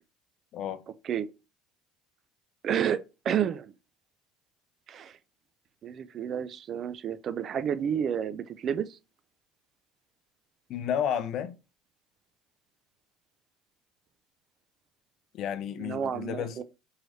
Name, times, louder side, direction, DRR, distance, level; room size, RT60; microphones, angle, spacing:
voice 1, 0.5-0.8 10.7-11.5 15.3-16.6, left 9 dB, 55° left, 0.4 m, -32 dB
voice 2, 2.6-3.7 4.9-5.2 5.8-9.0 15.8-16.6, right 8 dB, 45° right, 0.4 m, -30 dB
4.7 x 3.1 x 2.6 m
supercardioid pair, 100°, 0 cm